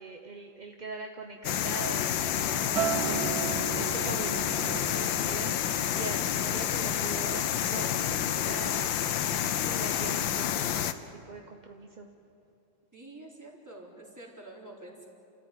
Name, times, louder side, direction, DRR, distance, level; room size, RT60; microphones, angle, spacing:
voice 1, 0.0-3.3 3.8-5.6 5.9-9.0 9.5-12.1, right 3 dB, 30° right, 3 dB, 0.9 m, -41 dB
sound 1, 1.4-10.9, left 10 dB, 80° left, 1.6 m, -29 dB
Acoustic guitar, 2.8-7.2 7.6-8.0, right 10 dB, 65° right, 1.1 m, -36 dB
voice 2, 12.9-15.1, right 2 dB, 10° right, -3 dB, 3.9 m, -47 dB
30.0 x 14.5 x 9.3 m, 2.8 s
omnidirectional pair, 2.1 m